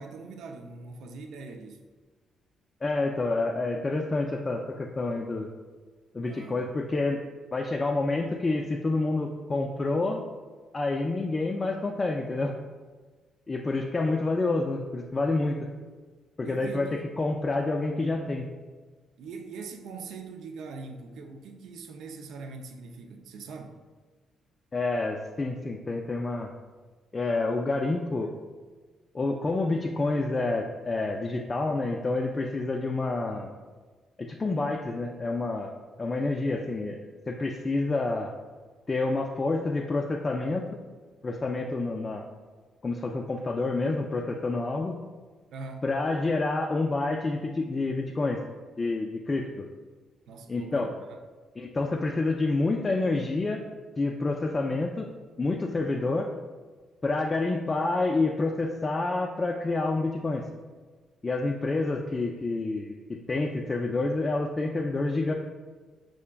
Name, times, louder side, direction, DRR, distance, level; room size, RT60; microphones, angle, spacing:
voice 1, 0.0-1.8 6.2-6.6 16.4-17.1 19.2-23.8 45.5-45.9 50.3-51.1, right 4 dB, 75° right, 4 dB, 0.4 m, -42 dB
voice 2, 2.8-5.5 6.1-7.2 7.5-10.2 10.7-12.5 13.5-15.6 16.4-16.9 17.2-18.5 24.7-26.5 27.1-28.3 29.1-33.5 34.2-35.7 36.0-37.0 37.3-38.3 38.9-40.8 41.2-42.3 42.8-45.0 45.8-48.4 48.8-49.7 50.5-50.9 51.6-53.6 54.0-55.1 55.4-56.3 57.0-60.4 61.2-65.3, left 3 dB, 30° left, 1 dB, 0.3 m, -28 dB
5.5 x 2.4 x 2.2 m, 1.4 s
cardioid pair, 90°, 0 cm